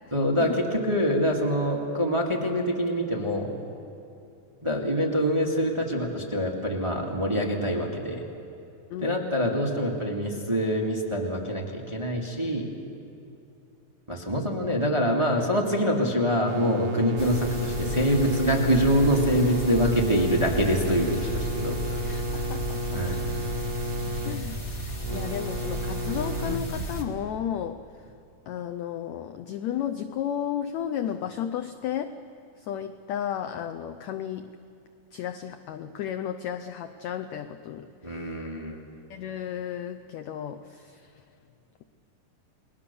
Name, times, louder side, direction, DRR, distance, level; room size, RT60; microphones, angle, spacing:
voice 1, 0.1-3.5 4.6-8.2 9.0-12.7 14.1-22.0 22.9-23.3 38.0-38.8, equal, 10° right, -1 dB, 1.5 m, -25 dB
voice 2, 8.9-9.2 22.0-23.0 24.2-24.6 25.1-27.8 28.5-32.2 32.6-34.6 35.1-38.3 39.1-41.2, left 9 dB, 80° left, 8 dB, 1.6 m, -33 dB
sound 1, 16.5-26.6, left 1 dB, 75° right, 2.7 m, -32 dB
sound 2, 17.2-27.0, right 1 dB, 25° left, 1.7 m, -34 dB
29.5 x 20.5 x 7.0 m, 2.7 s
omnidirectional pair, 4.0 m